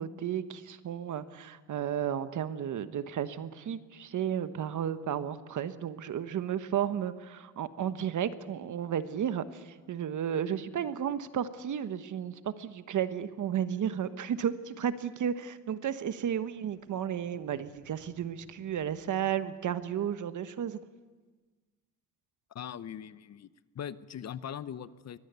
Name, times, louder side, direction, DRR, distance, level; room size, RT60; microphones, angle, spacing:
voice 1, 0.0-20.8, right 9 dB, 60° right, 12 dB, 1.2 m, -33 dB
sound 1, 16.6-20.0, left 5 dB, 65° left, 6.6 m, -63 dB
voice 2, 22.5-23.5 23.7-25.2, left 9 dB, 50° left, 15 dB, 0.8 m, -40 dB
23.0 x 18.0 x 8.2 m, 1.4 s
cardioid pair, 110°, 34 cm